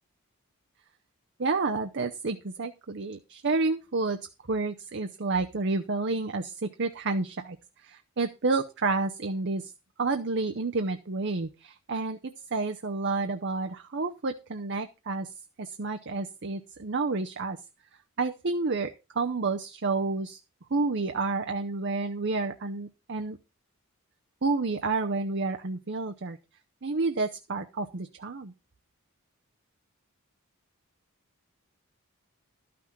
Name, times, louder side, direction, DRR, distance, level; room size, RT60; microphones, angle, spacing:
voice 1, 1.4-4.2 4.5-7.6 7.8-9.7 10.0-17.6 18.2-20.4 20.7-23.4 24.4-26.4 26.8-28.5, right 3 dB, 55° right, 6 dB, 0.7 m, -30 dB
12.5 x 6.0 x 5.9 m, 0.28 s
head